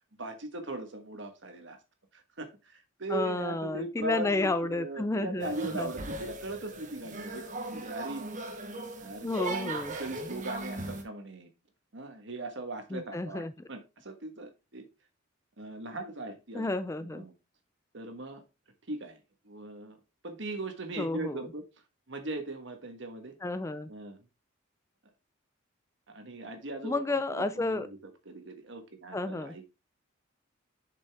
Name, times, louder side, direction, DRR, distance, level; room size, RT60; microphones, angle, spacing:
voice 1, 0.2-1.8 2.1-7.4 7.7-8.2 9.0-9.7 10.0-11.5 11.9-14.8 15.6-16.7 17.0-17.3 17.9-18.4 18.9-20.0 20.2-21.6 22.1-23.4 23.9-24.3 26.1-28.0 28.2-29.7, right 2 dB, 60° right, 1.4 m, -39 dB
voice 2, 3.1-5.9 9.2-9.9 12.9-13.5 16.5-17.2 21.0-21.5 23.4-23.9 26.8-27.9 29.1-29.5, left 2 dB, 15° left, 0.3 m, -31 dB
sound 1, 5.4-11.0, right 2 dB, 40° right, 1.1 m, -38 dB
7.1 x 5.3 x 3.5 m
head